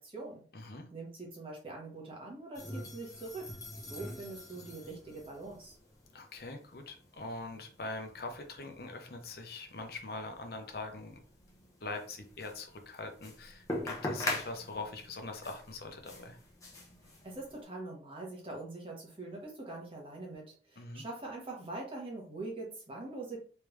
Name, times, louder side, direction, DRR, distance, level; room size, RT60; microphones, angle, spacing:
voice 1, 0.0-0.4 0.9-3.5 3.7-5.8 17.0-23.4, right 2 dB, 30° right, -2 dB, 1.2 m, -43 dB
voice 2, 0.5-0.9 6.1-11.2 11.8-16.4 20.8-21.0, left 3 dB, 55° left, 4 dB, 0.7 m, -43 dB
sound 1, 2.5-17.6, left 2 dB, 20° left, 0.8 m, -44 dB
3.4 x 3.3 x 3.2 m, 0.43 s
head